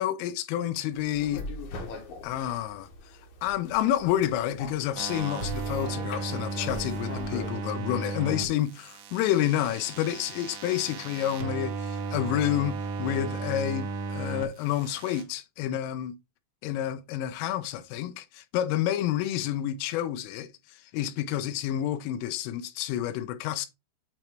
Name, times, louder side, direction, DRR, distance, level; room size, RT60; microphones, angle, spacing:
voice 1, 0.0-1.5 2.2-2.9 3.4-16.1 16.6-23.7, left 12 dB, 90° left, 3.2 m, -29 dB
sound 1, 0.9-7.5, left 3 dB, 70° left, 1.8 m, -41 dB
sound 2, 5.0-8.5 8.8-14.5 14.8-15.2, right 4 dB, 90° right, 3.8 m, -35 dB
8.8 x 3.0 x 4.4 m
omnidirectional pair, 5.8 m